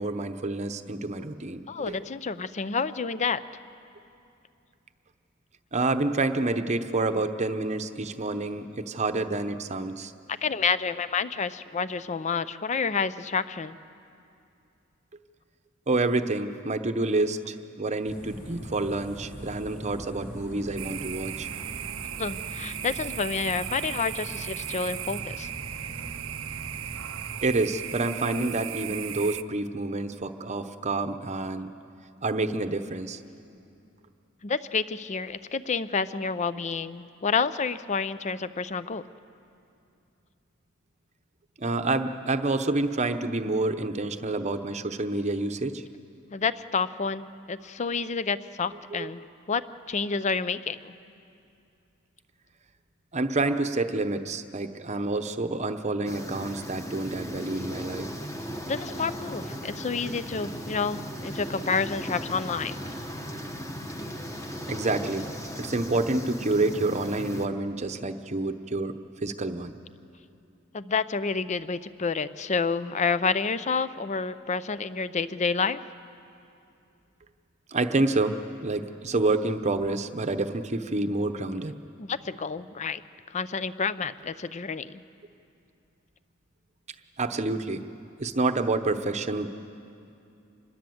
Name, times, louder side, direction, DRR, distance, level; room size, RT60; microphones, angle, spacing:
voice 1, 0.0-2.0 5.7-10.1 15.9-21.5 27.4-31.7 32.2-33.2 41.6-45.8 48.9-49.1 53.1-58.1 64.7-69.7 77.7-81.7 87.2-87.8 88.2-89.5, right 2 dB, 35° right, 9 dB, 0.8 m, -28 dB
voice 2, 1.7-3.4 10.3-13.8 22.2-25.5 34.4-39.0 46.3-49.2 49.5-49.6 49.9-50.9 58.7-62.7 70.7-75.8 82.0-83.0 83.3-85.0, left 5 dB, 35° left, 15 dB, 0.5 m, -29 dB
sound 1, 18.0-27.4, equal, 50° left, 6.2 m, -42 dB
sound 2, 20.8-29.4, right 12 dB, 75° right, 0.6 m, -36 dB
sound 3, 56.1-67.5, equal, 15° left, 1.3 m, -37 dB
26.0 x 21.0 x 7.8 m, 2.7 s
head